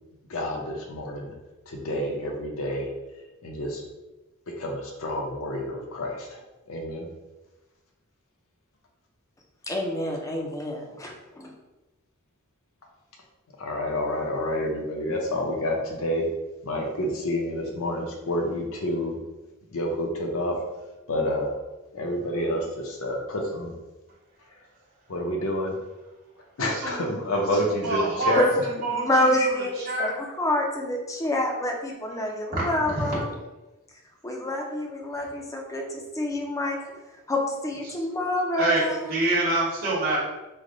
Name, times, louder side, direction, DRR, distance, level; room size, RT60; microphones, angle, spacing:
voice 1, 0.3-1.3 1.7-3.8 4.6-6.4 6.7-7.1 13.6-16.3 16.6-19.2 19.7-20.6 21.1-21.6 21.9-23.7 24.5-24.6 25.1-25.8 26.6-28.5, left 1 dB, 65° left, 1 dB, 0.7 m, -29 dB
voice 2, 9.7-11.5 28.4-28.5 28.9-30.1 30.4-33.3 34.2-36.8 37.3-39.0, left 1 dB, 15° left, 1 dB, 0.5 m, -27 dB
voice 3, 26.6-27.2 27.6-30.1 32.5-33.1 38.5-40.2, right 2 dB, 45° right, -8 dB, 1.1 m, -27 dB
3.3 x 2.1 x 3.8 m, 1.1 s
head